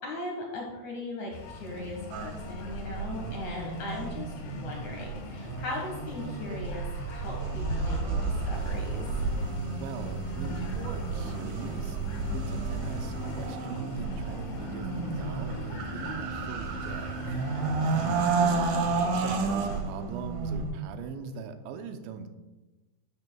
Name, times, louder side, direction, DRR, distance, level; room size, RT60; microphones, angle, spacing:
voice 1, 0.0-9.0 17.8-18.1, left 2 dB, 55° left, -1 dB, 2.2 m, -39 dB
sound 1, 1.3-19.8, left 3 dB, 70° left, 2.8 m, -41 dB
sound 2, 2.1-20.7, right 4 dB, 70° right, 2.0 m, -32 dB
sound 3, 8.5-13.5, right 6 dB, 45° right, 2.4 m, -40 dB
voice 2, 9.8-12.0 12.3-17.2 17.8-22.3, right 5 dB, 85° right, 7 dB, 3.0 m, -41 dB
11.5 x 10.5 x 2.3 m, 1.1 s
omnidirectional pair, 5.0 m